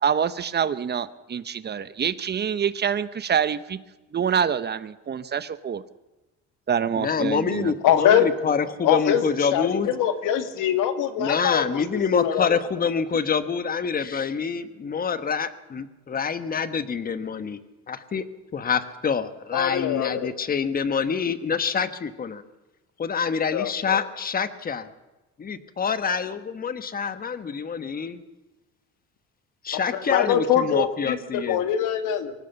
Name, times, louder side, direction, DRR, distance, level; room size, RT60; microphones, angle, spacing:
voice 1, 0.0-3.8 4.1-5.8 6.7-7.7, right 7 dB, 30° right, 14 dB, 0.9 m, -26 dB
voice 2, 7.0-9.9 11.2-17.6 17.9-18.2 18.5-22.4 23.0-24.9 25.4-28.2 29.6-31.6, left 6 dB, 30° left, 11 dB, 1.4 m, -26 dB
voice 3, 7.8-8.3 8.8-12.5 19.5-20.3 23.5-24.0 29.7-32.3, left 9 dB, 80° left, 8 dB, 2.3 m, -23 dB
24.5 x 16.5 x 7.0 m, 1.1 s
cardioid pair, 135°, 31 cm